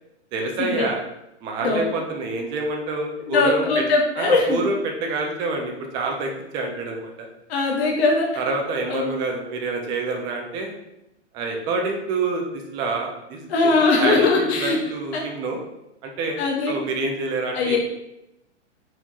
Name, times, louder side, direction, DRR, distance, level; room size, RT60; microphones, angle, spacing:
voice 1, 0.3-1.0 1.4-3.8 4.2-7.3 8.4-10.7 11.3-12.4 12.7-13.7 14.0-15.6 16.0-16.4 16.7-17.8, right 3 dB, 15° right, 1 dB, 0.3 m, -27 dB
voice 2, 3.2-4.6 7.5-8.3 8.9-9.1 13.5-14.8 15.1-15.2 16.4-16.7 17.5-17.8, left 3 dB, 60° left, 0 dB, 1.1 m, -20 dB
4.4 x 4.3 x 2.8 m, 0.88 s
hypercardioid pair, 120°, 36 cm